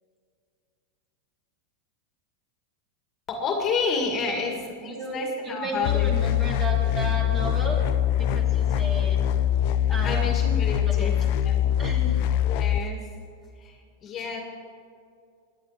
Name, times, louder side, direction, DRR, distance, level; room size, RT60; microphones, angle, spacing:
voice 1, 3.3-6.1 9.9-11.5 12.4-13.1 13.6-14.4, left 4 dB, 30° left, 3 dB, 2.1 m, -30 dB
voice 2, 4.8-9.2 9.9-10.4 10.8-11.1 11.8-12.2, right 2 dB, 25° right, -1 dB, 3.3 m, -34 dB
sound 1, 5.8-12.8, left 11 dB, 55° left, 0.5 m, -23 dB
18.0 x 10.5 x 5.1 m, 2.4 s
supercardioid pair, 125°, 0 cm